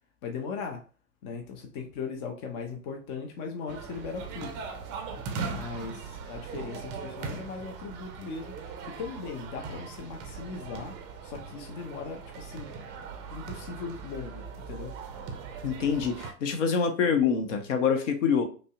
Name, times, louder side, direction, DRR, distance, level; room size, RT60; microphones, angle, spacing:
voice 1, 0.2-0.8 1.2-4.6 5.4-11.0 11.2-12.7 13.3-14.9, left 5 dB, 35° left, 2 dB, 0.6 m, -38 dB
sound 1, 3.7-16.3, right 5 dB, 25° right, 0.5 m, -40 dB
voice 2, 15.6-18.4, left 6 dB, 60° left, 6 dB, 0.8 m, -25 dB
5.1 x 2.1 x 2.3 m, 0.38 s
hypercardioid pair, 105°, 43 cm